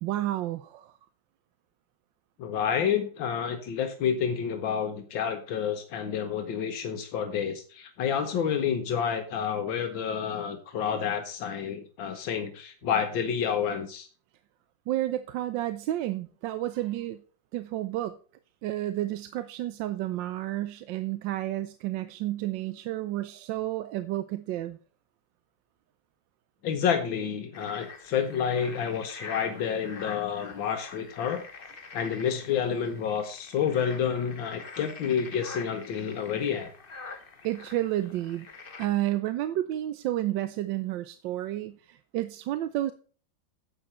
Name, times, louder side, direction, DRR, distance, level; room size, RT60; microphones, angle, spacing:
voice 1, 0.0-0.9 14.9-17.2 17.5-18.2 18.6-24.8 37.4-38.5 38.8-42.9, right 14 dB, 80° right, 12 dB, 1.3 m, -31 dB
voice 2, 2.4-14.1 26.6-31.4 31.9-36.7, left 7 dB, 85° left, 6 dB, 1.8 m, -29 dB
sound 1, 27.5-38.9, left 4 dB, 35° left, 1.1 m, -45 dB
11.0 x 8.0 x 4.3 m, 0.40 s
omnidirectional pair, 2.0 m